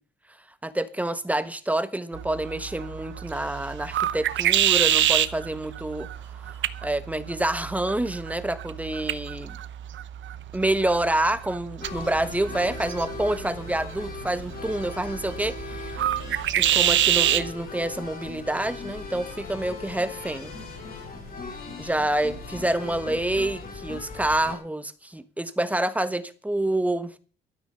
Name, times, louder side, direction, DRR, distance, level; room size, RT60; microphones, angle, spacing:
voice 1, 0.6-6.1 6.8-9.6 10.5-16.0 16.6-20.5 21.8-27.1, right 1 dB, 5° right, 1.2 m, -27 dB
sound 1, 2.1-17.5, right 11 dB, 65° right, 0.9 m, -27 dB
sound 2, 11.8-24.6, left 3 dB, 45° left, 5.9 m, -38 dB
13.0 x 9.4 x 6.7 m
cardioid pair, 95°, 21 cm